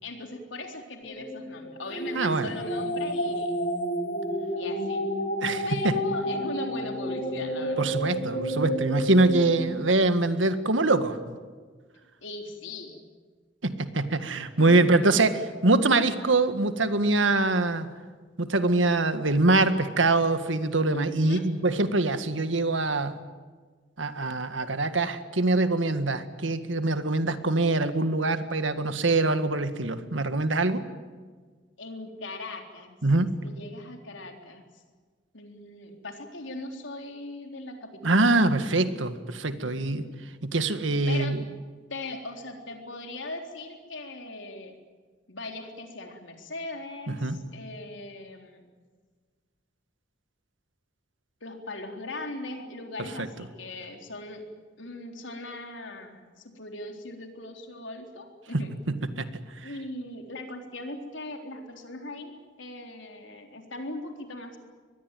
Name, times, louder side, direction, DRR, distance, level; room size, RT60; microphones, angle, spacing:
voice 1, 0.0-3.6 4.5-5.0 5.6-7.9 12.2-13.0 14.6-15.1 20.9-21.5 31.8-32.9 33.4-34.8 35.3-38.2 39.6-40.1 41.1-41.4 41.9-44.8 45.3-48.6 51.4-54.5 54.8-58.7 59.6-64.6, left 2 dB, 80° left, 4 dB, 3.9 m, -39 dB
sound 1, 1.0-9.7, equal, 45° left, 4.7 m, -30 dB
voice 2, 2.1-2.5 5.4-5.9 7.8-11.4 13.6-15.3 15.6-17.9 18.4-23.2 24.0-30.8 33.0-33.3 38.0-40.0 40.4-41.4 47.1-47.4 53.2-53.3 58.5-59.3 59.6-59.7, right 2 dB, 85° right, 10 dB, 1.8 m, -24 dB
24.0 x 20.5 x 9.2 m, 1.5 s
head